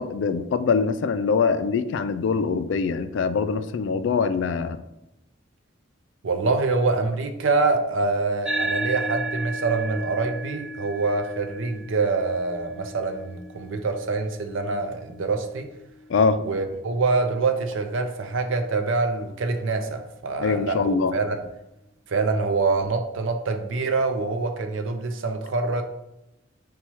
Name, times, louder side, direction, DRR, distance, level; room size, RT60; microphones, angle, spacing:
voice 1, 0.0-4.8 16.1-16.4 20.4-21.1, left 5 dB, 65° left, 11 dB, 0.3 m, -23 dB
voice 2, 6.2-15.7 16.4-21.4 22.1-25.8, right 3 dB, 75° right, 7 dB, 0.5 m, -25 dB
sound 1, 8.4-17.2, right 2 dB, 5° right, 0.5 m, -34 dB
4.3 x 2.3 x 4.4 m, 0.88 s
head